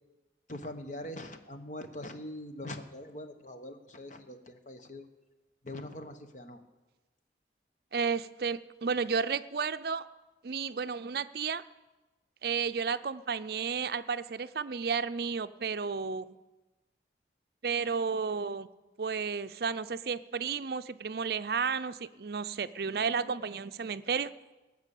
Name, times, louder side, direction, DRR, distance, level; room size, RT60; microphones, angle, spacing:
voice 1, 0.5-5.1 5.6-6.6, left 1 dB, 45° left, 7 dB, 1.1 m, -42 dB
voice 2, 7.9-10.1 10.4-11.6 12.4-16.4 17.6-18.7 19.0-24.3, right 5 dB, 55° right, 12 dB, 0.5 m, -32 dB
17.5 x 6.8 x 8.3 m, 1.1 s
head